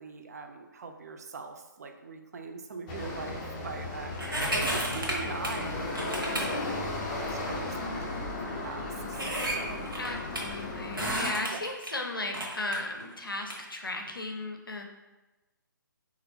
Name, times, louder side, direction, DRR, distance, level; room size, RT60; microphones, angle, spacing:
voice 1, 0.0-9.9 11.5-11.6, right 4 dB, 50° right, 5 dB, 0.4 m, -42 dB
sound 1, 2.9-11.3, left 2 dB, 20° left, 0.5 m, -35 dB
sound 2, 4.2-5.7 5.9-6.5 7.3-7.4 8.2-8.3 8.5-8.6 9.1-10.4 10.9-11.9 12.3-13.5 14.1-14.2, right 1 dB, 85° right, 0.9 m, -32 dB
voice 2, 10.0-14.8, left 2 dB, 85° left, 3 dB, 0.5 m, -36 dB
3.1 x 2.5 x 3.1 m, 1.1 s
figure-of-eight pair, 135°, 11 cm